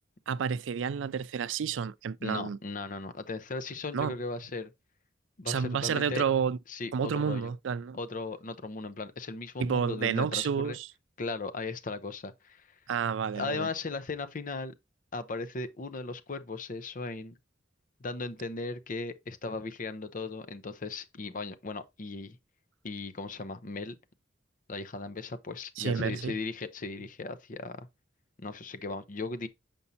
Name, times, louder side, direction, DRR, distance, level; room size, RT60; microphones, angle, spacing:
voice 1, 0.3-2.6 3.9-4.1 5.5-6.6 6.9-8.0 9.6-10.9 12.9-13.7 25.8-26.3, right 7 dB, 90° right, 0.4 m, -30 dB
voice 2, 2.2-4.7 5.4-6.2 6.7-7.5 7.9-10.8 11.2-12.7 13.4-14.7 15.1-17.3 18.0-22.4 22.8-24.0 24.7-27.9 28.4-29.5, left 3 dB, 45° left, 0.6 m, -37 dB
7.0 x 5.2 x 2.7 m
head